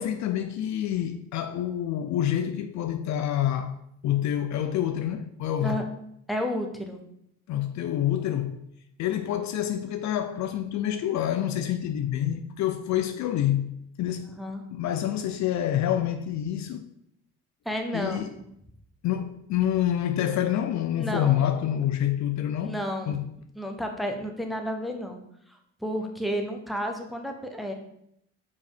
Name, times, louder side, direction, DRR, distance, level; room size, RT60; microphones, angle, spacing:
voice 1, 0.0-3.8 4.0-5.8 7.5-8.6 9.0-13.7 14.0-14.3 14.7-16.9 17.9-18.3 19.0-22.8 23.1-23.3, left 11 dB, 55° left, 0.6 m, -27 dB
voice 2, 6.3-7.0 14.3-14.6 17.6-18.4 21.0-21.4 22.6-23.1 23.5-25.2 25.5-27.7, equal, ahead, 1.2 m, -31 dB
5.1 x 4.9 x 5.0 m
hypercardioid pair, 70°, 34 cm